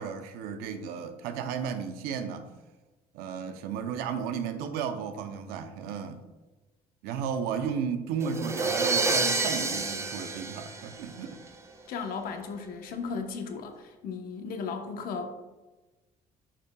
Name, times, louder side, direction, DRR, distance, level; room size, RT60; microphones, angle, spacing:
voice 1, 0.0-2.5 3.1-6.2 7.0-11.4, right 7 dB, 90° right, 8 dB, 0.6 m, -34 dB
sound 1, 8.2-11.5, right 3 dB, 20° right, 0.6 m, -29 dB
voice 2, 11.9-15.3, left 5 dB, 70° left, 5 dB, 0.9 m, -35 dB
8.6 x 5.4 x 2.3 m, 1.2 s
cardioid pair, 100°, 15 cm